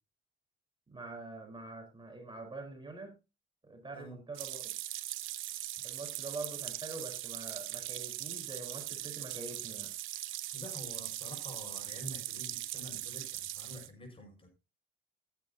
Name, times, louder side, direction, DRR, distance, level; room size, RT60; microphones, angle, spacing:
voice 1, 0.9-3.1 3.6-4.7 5.8-9.9, right 2 dB, 25° right, 4.2 m, -45 dB
sound 1, 4.4-13.9, right 14 dB, 90° right, 0.9 m, -40 dB
voice 2, 10.5-14.5, equal, 25° left, 6.1 m, -48 dB
15.0 x 9.7 x 2.8 m
cardioid pair, 90°, 20 cm